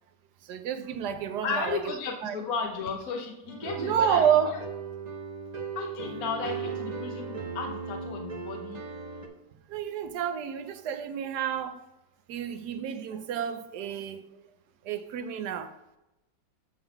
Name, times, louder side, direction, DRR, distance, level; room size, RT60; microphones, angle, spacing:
voice 1, 0.4-2.3 3.8-4.5 9.7-11.8 12.3-14.4 14.8-15.7, right 8 dB, 70° right, 1.2 m, -29 dB
voice 2, 1.4-4.2 5.7-8.8, left 4 dB, 60° left, 1.2 m, -34 dB
sound 1, 3.5-9.3, right 5 dB, 35° right, 0.7 m, -37 dB
9.6 x 3.8 x 5.6 m
omnidirectional pair, 1.9 m